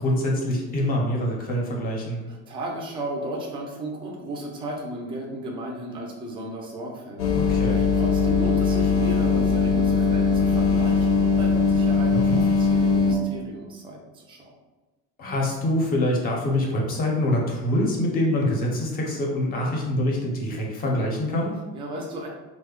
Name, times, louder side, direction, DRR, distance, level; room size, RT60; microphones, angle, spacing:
voice 1, 0.0-2.2 7.3-7.9 12.1-12.4 15.2-21.6, left 1 dB, 30° left, -1 dB, 0.6 m, -25 dB
voice 2, 2.3-7.4 7.7-14.4 21.7-22.3, right 1 dB, 15° right, -1 dB, 0.4 m, -34 dB
sound 1, 7.2-13.2, left 4 dB, 85° left, 0.6 m, -20 dB
3.1 x 2.1 x 3.6 m, 1.2 s
cardioid pair, 175°, 30 cm